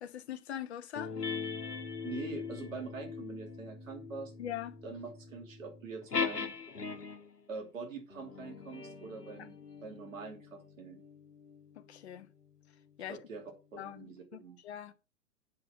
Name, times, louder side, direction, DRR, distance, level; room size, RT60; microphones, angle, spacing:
voice 1, 0.0-1.1 4.4-4.7 9.4-9.5 11.7-12.3 13.0-13.2 13.8-14.9, left 10 dB, 45° left, 1.1 m, -42 dB
sound 1, 1.0-7.4 8.1-13.0, left 5 dB, 80° left, 1.4 m, -41 dB
voice 2, 2.0-4.3 4.8-6.5 7.5-9.5 9.8-11.0 13.1-13.4 13.7-14.6, right 4 dB, 55° right, 2.9 m, -44 dB
8.8 x 5.3 x 5.6 m
figure-of-eight pair, 120°, 46 cm